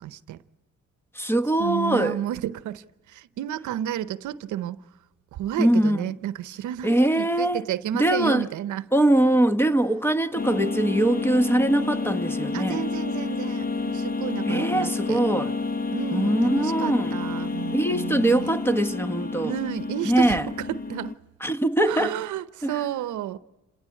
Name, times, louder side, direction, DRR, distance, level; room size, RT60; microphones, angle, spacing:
voice 1, 0.0-0.4 1.6-4.8 5.3-8.8 12.5-15.2 15.9-18.5 19.4-21.1 21.9-23.4, right 11 dB, 75° right, 0.8 m, -31 dB
voice 2, 1.1-2.2 5.6-6.1 6.8-7.6 7.9-8.5 8.9-12.8 14.5-15.5 16.1-17.2 17.7-19.5 20.0-20.5 21.4-22.1 22.6-22.7, right 1 dB, 5° left, 1.1 m, -22 dB
sound 1, 10.4-21.1, left 3 dB, 30° left, 0.9 m, -29 dB
29.0 x 17.5 x 8.3 m
cardioid pair, 90°, 30 cm